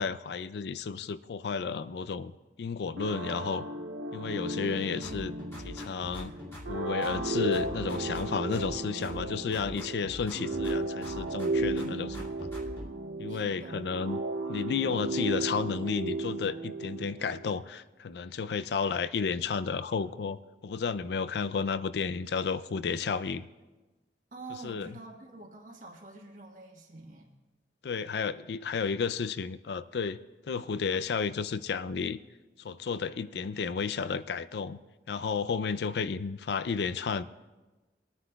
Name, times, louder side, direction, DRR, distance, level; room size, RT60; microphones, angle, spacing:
voice 1, 0.0-2.3 2.6-3.7 4.1-5.3 5.6-6.3 6.7-12.5 13.2-14.2 14.5-23.5 24.6-24.9 27.8-30.2 30.5-32.2 32.6-34.8 35.1-37.2, left 5 dB, 65° left, 14 dB, 0.4 m, -32 dB
sound 1, 3.0-17.5, right 2 dB, 80° right, 0.7 m, -35 dB
sound 2, 5.0-6.8 7.0-8.8 9.0-10.8 11.0-12.9, equal, 15° left, 2.3 m, -43 dB
voice 2, 13.3-14.0 24.3-27.3, right 3 dB, 45° right, -1 dB, 1.2 m, -46 dB
22.0 x 9.7 x 2.3 m, 1.2 s
head